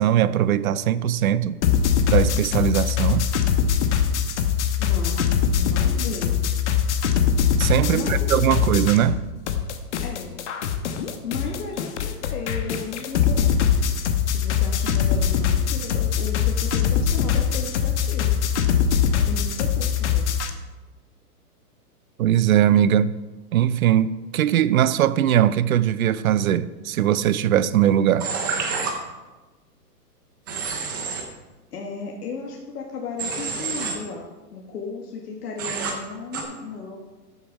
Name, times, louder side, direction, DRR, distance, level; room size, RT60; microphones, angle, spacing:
voice 1, 0.0-1.6 2.1-3.3 7.6-9.2 22.2-23.1 23.5-28.3, right 10 dB, 60° right, 0.6 m, -20 dB
sound 1, 1.6-9.2 9.5-20.5, left 8 dB, 45° left, 1.0 m, -22 dB
voice 2, 4.8-5.3 5.6-6.4 7.9-8.7 10.0-10.4 11.2-13.8 14.3-18.4 19.3-20.3 31.7-34.2 34.5-37.0, left 4 dB, 70° left, 1.9 m, -34 dB
Human voice / Train, 28.2-28.9 30.5-31.2 33.2-33.9 35.6-35.9 36.3-36.4, right 5 dB, 15° right, 0.5 m, -28 dB
13.0 x 6.9 x 4.8 m
hypercardioid pair, 160°, 48 cm